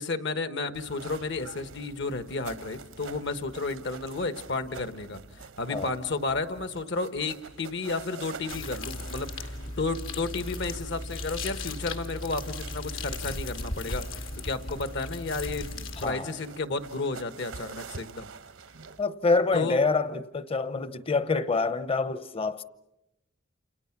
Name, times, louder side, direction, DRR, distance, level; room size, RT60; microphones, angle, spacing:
voice 1, 0.0-5.2 5.6-18.3 19.5-19.8, left 3 dB, 65° left, 1.4 m, -32 dB
sound 1, 0.7-19.0, right 5 dB, 80° right, 1.1 m, -47 dB
sound 2, 8.5-16.1, left 2 dB, 80° left, 2.5 m, -36 dB
voice 2, 16.0-16.3 19.0-22.6, left 4 dB, 30° left, 0.8 m, -26 dB
29.0 x 28.5 x 6.0 m
head